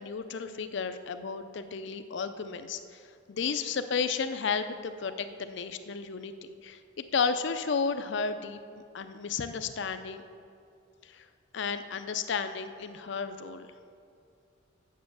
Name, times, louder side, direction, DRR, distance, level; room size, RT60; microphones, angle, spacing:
voice 1, 0.0-6.3 6.6-10.2 11.0-11.3 11.5-13.7, left 5 dB, 65° left, 10 dB, 0.5 m, -33 dB
7.5 x 6.9 x 7.1 m, 2.5 s
head